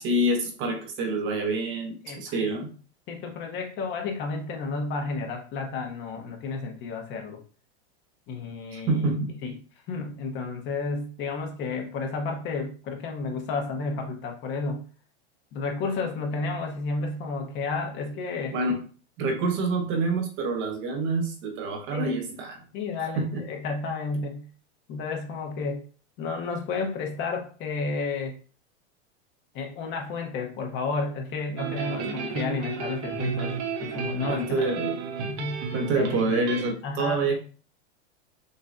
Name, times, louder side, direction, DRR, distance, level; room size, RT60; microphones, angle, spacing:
voice 1, 0.0-2.7 8.7-9.3 18.5-18.8 19.2-22.6 23.2-23.5 34.3-35.0 35.7-37.4, right 2 dB, 35° right, 5 dB, 0.9 m, -27 dB
voice 2, 2.0-2.4 3.1-7.4 8.3-9.0 9.4-9.5 9.9-14.8 15.5-18.6 21.9-22.3 22.7-24.4 24.9-25.8 26.2-28.4 29.5-33.5 33.8-34.7 35.3-35.6 35.9-36.2 36.8-37.2, left 4 dB, 35° left, 3 dB, 0.8 m, -31 dB
sound 1, 31.6-36.7, right 5 dB, 75° right, 1.0 m, -32 dB
6.4 x 2.2 x 2.5 m, 0.38 s
supercardioid pair, 140°, 34 cm